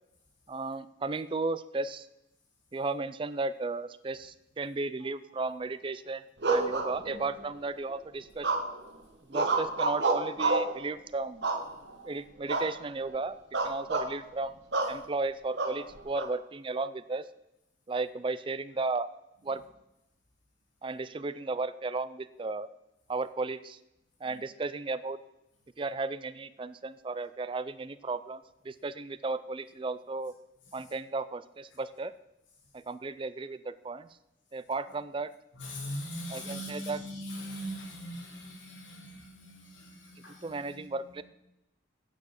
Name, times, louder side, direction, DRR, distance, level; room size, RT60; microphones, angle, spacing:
voice 1, 0.5-2.1 2.7-8.5 9.3-11.5 12.0-13.3 13.6-14.6 14.9-17.3 17.9-19.1 19.4-19.6 20.8-22.7 23.1-23.8 24.2-25.2 25.8-30.3 30.7-32.1 32.7-34.1 34.5-35.3 36.3-37.0 40.4-41.2, right 3 dB, 25° right, 15 dB, 0.4 m, -34 dB
sound 1, 6.4-7.4 8.4-8.9 9.3-10.8 11.4-12.0 12.5-12.7 13.0-13.2 13.5-14.1 14.7-15.0 15.6-16.3, right 3 dB, 65° right, 1.1 m, -29 dB
voice 2, 35.5-41.2, equal, 90° left, -1 dB, 3.1 m, -41 dB
8.5 x 7.3 x 6.5 m, 0.88 s
head